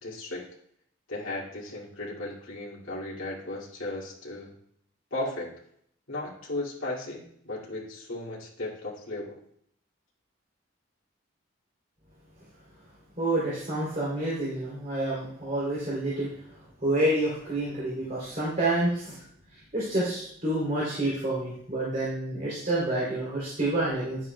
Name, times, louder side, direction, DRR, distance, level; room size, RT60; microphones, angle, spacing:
voice 1, 0.0-0.4 1.1-4.5 5.1-5.5 6.1-9.3, left 2 dB, 75° left, -5 dB, 2.4 m, -35 dB
voice 2, 13.2-16.3 16.8-19.2 19.5-24.2, right 1 dB, 35° right, -8 dB, 3.2 m, -28 dB
10.5 x 9.0 x 2.3 m, 0.68 s
head